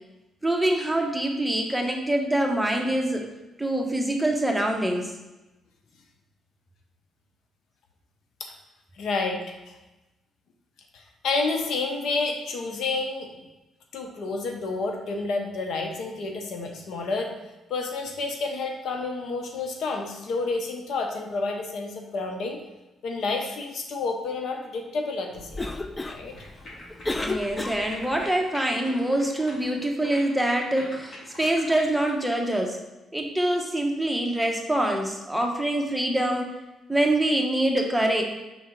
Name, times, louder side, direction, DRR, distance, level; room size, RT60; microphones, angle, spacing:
voice 1, 0.4-3.3 3.6-5.0 27.2-32.8 33.1-36.5 36.9-38.2, right 1 dB, 5° right, 1 dB, 0.9 m, -25 dB
voice 2, 8.9-9.7 10.9-13.3 13.9-17.3 17.7-22.6 23.0-25.6 26.0-26.3 30.0-30.1, left 3 dB, 70° left, 3 dB, 0.8 m, -30 dB
Cough, 25.3-28.2, left 2 dB, 15° left, 0.4 m, -33 dB
sound 1, 26.1-32.2, left 1 dB, 50° left, 1.7 m, -43 dB
5.6 x 3.6 x 4.6 m, 1.0 s
cardioid pair, 90°, 0 cm